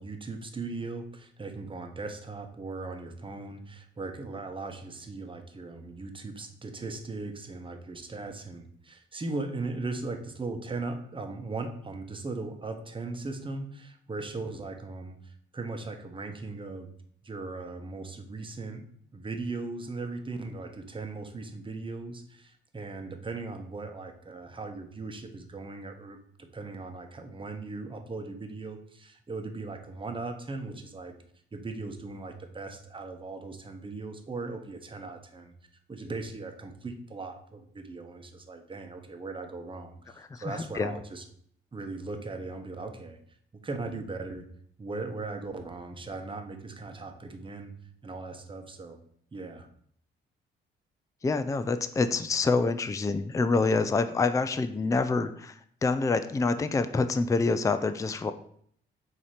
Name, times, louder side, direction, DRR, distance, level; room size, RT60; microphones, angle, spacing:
voice 1, 0.0-16.9 17.2-18.8 19.1-31.2 31.5-35.5 35.9-41.2 41.7-43.2 43.5-44.5 44.8-47.7 48.0-49.0 49.3-49.7, right 3 dB, 25° right, 5 dB, 1.0 m, -38 dB
voice 2, 40.3-40.9 51.2-55.5 55.8-58.3, left 3 dB, 15° left, 11 dB, 0.4 m, -26 dB
7.1 x 2.9 x 4.9 m, 0.63 s
cardioid pair, 90°, 20 cm